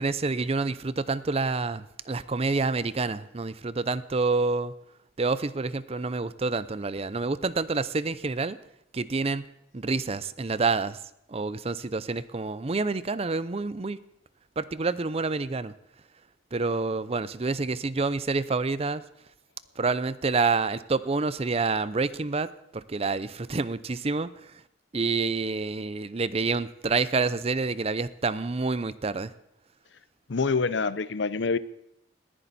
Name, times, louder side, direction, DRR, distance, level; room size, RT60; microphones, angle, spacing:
voice 1, 0.0-4.7 5.2-8.6 8.9-9.5 9.7-11.0 11.3-14.0 14.6-15.7 16.5-19.0 19.8-24.3 24.9-29.3, right 3 dB, 35° right, 16 dB, 0.6 m, -28 dB
voice 2, 30.3-31.6, left 4 dB, 80° left, 16 dB, 0.7 m, -26 dB
20.0 x 15.0 x 4.2 m, 0.79 s
head